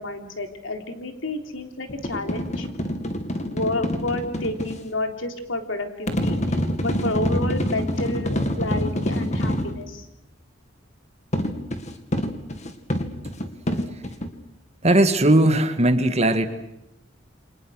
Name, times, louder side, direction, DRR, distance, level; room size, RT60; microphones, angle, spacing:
voice 1, 0.0-2.7 3.4-10.0, left 2 dB, 80° left, 5 dB, 3.5 m, -30 dB
sound 1, 1.9-4.8 6.1-9.8 11.3-14.3, equal, 35° left, 2.3 m, -26 dB
voice 2, 14.8-16.5, right 1 dB, 35° right, 8 dB, 2.0 m, -18 dB
28.5 x 25.5 x 6.5 m, 0.87 s
head